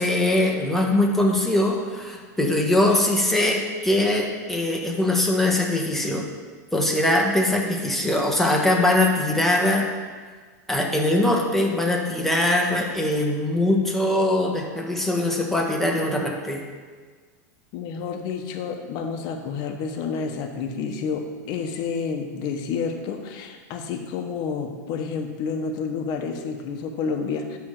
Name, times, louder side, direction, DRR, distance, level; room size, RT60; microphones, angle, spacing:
voice 1, 0.0-6.2 6.7-9.8 10.7-16.6, left 1 dB, 5° left, -1 dB, 1.3 m, -22 dB
voice 2, 17.7-27.6, left 5 dB, 50° left, 4 dB, 1.1 m, -29 dB
10.0 x 3.5 x 6.6 m, 1.5 s
hypercardioid pair, 115°, 9 cm